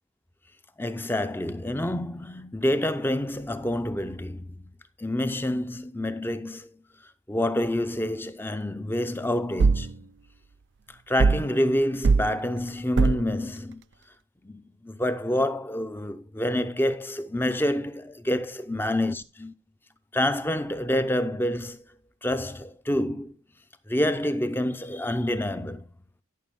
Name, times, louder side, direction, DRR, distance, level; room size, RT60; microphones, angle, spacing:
voice 1, 0.8-4.7 5.0-6.8 7.3-10.1 10.9-13.8 14.4-19.5 20.1-21.8 22.2-23.3 23.9-25.9, left 1 dB, 10° left, 0.6 m, -28 dB
sound 1, 9.6-9.9 11.2-11.5 12.0-12.3 13.0-13.3, right 4 dB, 65° right, 0.4 m, -20 dB
13.0 x 6.3 x 3.6 m
head